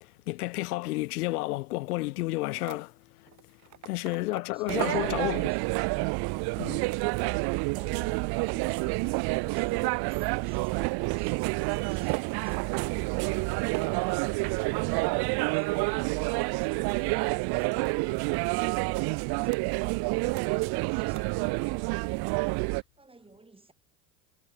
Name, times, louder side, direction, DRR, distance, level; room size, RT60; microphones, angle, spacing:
voice 1, 0.0-3.3 3.8-5.5 6.6-6.9, left 20 dB, 80° left, 0.7 m, -31 dB
sound 1, 2.6-2.8 3.3-5.0 5.4-6.1 6.5-7.1 7.7-9.0 9.3-10.2 10.7-19.7 20.3-20.8 21.1-21.2, right 12 dB, 40° right, 1.6 m, -48 dB
voice 2, 3.8-5.9 6.9-13.1 13.6-23.7, right 3 dB, 10° right, 5.3 m, -56 dB
sound 2, 4.7-22.8, right 28 dB, 55° right, 1.0 m, -28 dB
hypercardioid pair, 80°, 45 cm